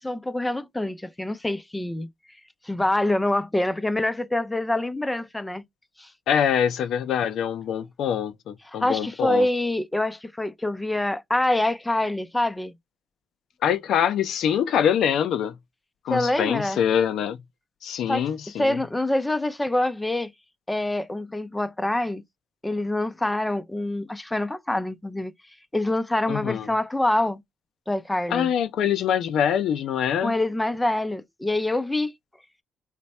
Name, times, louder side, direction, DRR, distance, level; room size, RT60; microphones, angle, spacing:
voice 1, 0.0-2.1 2.6-5.6 6.0-6.1 8.8-12.7 16.1-16.8 18.1-18.3 18.6-20.3 20.7-22.2 22.6-25.3 25.7-27.4 27.9-28.5 30.2-32.1, left 1 dB, 10° left, 0.4 m, -25 dB
voice 2, 6.3-9.5 13.6-15.5 16.0-17.4 17.8-18.8 26.3-26.7 28.3-30.3, left 9 dB, 75° left, 0.4 m, -24 dB
3.3 x 2.1 x 4.1 m
cardioid pair, 90°, 0 cm